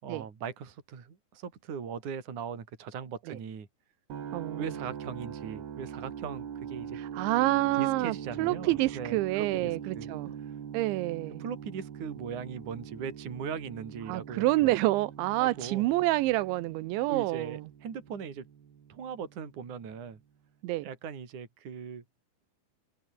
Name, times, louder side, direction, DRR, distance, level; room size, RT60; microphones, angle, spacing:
voice 1, 0.0-3.7 4.6-7.0 7.8-10.1 10.4-10.5 11.4-14.7 15.4-15.9 17.1-18.5 18.9-20.2 20.8-22.0, right 6 dB, 45° right, 4.8 m, -39 dB
sound 1, 4.1-20.0, right 8 dB, 60° right, 4.9 m, -43 dB
voice 2, 4.3-4.7 6.9-10.3 10.7-11.4 14.1-17.7 20.6-20.9, right 18 dB, 85° right, 3.3 m, -28 dB
omnidirectional pair, 5.2 m